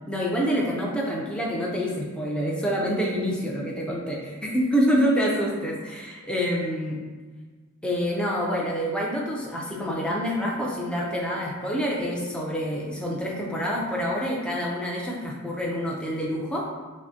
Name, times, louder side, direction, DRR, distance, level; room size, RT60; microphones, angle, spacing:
voice 1, 0.1-7.0 7.8-16.6, equal, 5° left, -3 dB, 0.5 m, -27 dB
5.9 x 2.1 x 2.7 m, 1.4 s
head